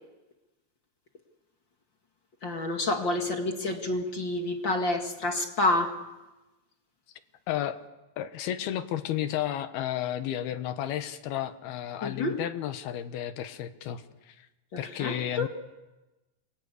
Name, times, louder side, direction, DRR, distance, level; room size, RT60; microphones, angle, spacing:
voice 1, 2.4-6.0 12.0-12.4 14.7-15.5, left 2 dB, 40° left, 4 dB, 1.8 m, -29 dB
voice 2, 7.5-7.8 8.2-14.5 14.8-15.5, left 11 dB, 75° left, 10 dB, 3.0 m, -32 dB
29.0 x 23.0 x 8.4 m, 1.1 s
omnidirectional pair, 4.8 m